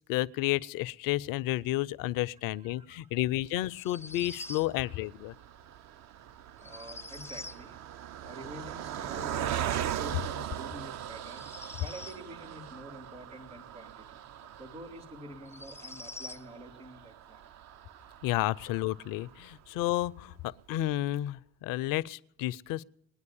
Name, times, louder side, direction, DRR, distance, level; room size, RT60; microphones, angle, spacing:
voice 1, 0.1-5.3 18.2-22.8, left 15 dB, 60° left, 0.5 m, -31 dB
voice 2, 2.4-3.0 4.7-5.0 6.6-7.8 8.2-14.2 14.6-17.5, right 1 dB, 85° right, 2.1 m, -48 dB
sound 1, 3.8-4.7 6.6-7.6 11.2-12.2 14.4-14.5 15.4-16.4, left 2 dB, 5° left, 0.5 m, -45 dB
Car passing by, 4.2-19.7 20.2-20.3 20.5-20.7, right 10 dB, 45° right, 0.5 m, -40 dB
21.0 x 9.5 x 7.1 m
hypercardioid pair, 50°, 38 cm